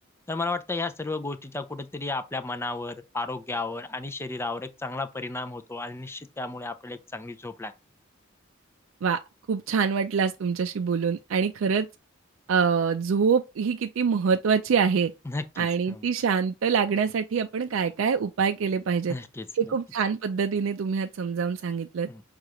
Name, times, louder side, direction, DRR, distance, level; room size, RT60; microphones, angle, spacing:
voice 1, 0.3-7.7 15.3-16.1 19.1-19.8 22.1-22.2, left 3 dB, 10° left, 0.4 m, -33 dB
voice 2, 9.5-11.9 12.5-15.1 15.6-19.2 19.5-22.1, right 6 dB, 70° right, 0.4 m, -25 dB
6.5 x 2.4 x 3.0 m
head